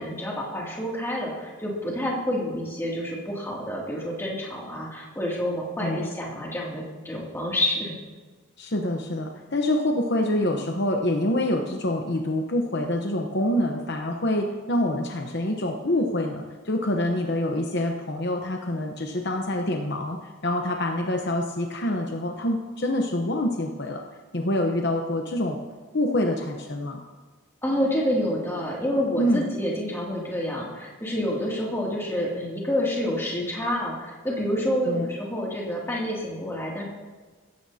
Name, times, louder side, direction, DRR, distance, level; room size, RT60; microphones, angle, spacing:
voice 1, 0.0-7.9 27.6-36.8, equal, 10° left, -4 dB, 2.5 m, -28 dB
voice 2, 8.6-24.0 24.3-25.6 25.9-27.0 29.2-29.5 34.9-35.1, left 1 dB, 50° left, 2 dB, 0.9 m, -26 dB
16.5 x 14.0 x 2.8 m, 1.4 s
head